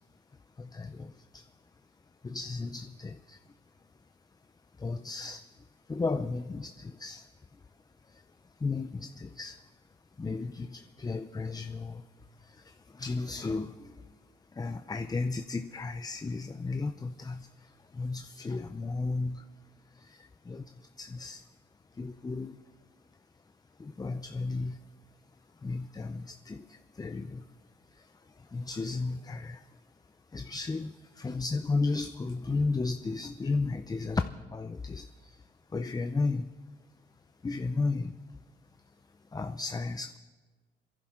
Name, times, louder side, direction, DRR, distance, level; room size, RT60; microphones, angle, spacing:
voice 1, 0.6-1.4 2.2-3.4 4.8-5.4 5.9-7.2 8.6-9.6 10.2-12.0 13.0-13.9 14.6-17.5 18.0-19.4 20.5-20.6 21.0-21.4 22.0-22.6 23.8-24.8 25.6-26.6 27.0-27.4 28.5-29.6 30.3-34.2 34.5-35.0 35.7-36.5 37.4-38.1 39.3-40.2, left 3 dB, 20° left, 9 dB, 0.6 m, -33 dB
28.5 x 11.0 x 3.8 m, 1.4 s
cardioid pair, 90°, 20 cm